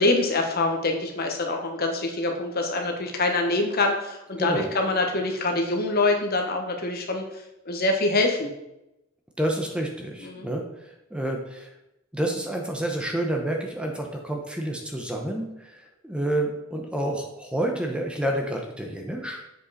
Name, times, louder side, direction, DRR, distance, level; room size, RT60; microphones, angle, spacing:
voice 1, 0.0-7.2 7.7-8.5 10.2-10.5, left 2 dB, 50° left, 3 dB, 1.1 m, -25 dB
voice 2, 4.4-4.7 9.4-11.7 12.1-19.5, right 1 dB, 5° right, 1 dB, 0.8 m, -29 dB
7.7 x 5.4 x 4.1 m, 0.89 s
head